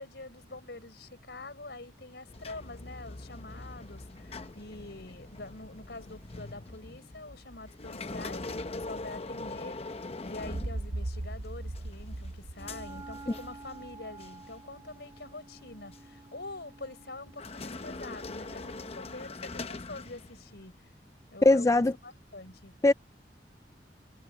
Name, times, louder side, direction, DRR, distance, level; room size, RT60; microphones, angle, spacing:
voice 1, 0.0-20.9 21.3-22.8, left 2 dB, 70° left, 5.0 m, -45 dB
sound 1, 2.3-11.3 11.7-13.9 14.2-14.5 15.2-16.1 17.3-20.6, left 3 dB, 35° left, 0.9 m, -42 dB
sound 2, 10.4-14.2, right 1 dB, 55° right, 0.9 m, -38 dB
Wind instrument woodwind instrument, 12.5-19.2, right 3 dB, 25° right, 2.9 m, -51 dB
voice 2, 21.4-21.9 22.8-22.9, left 2 dB, 15° left, 0.3 m, -20 dB
head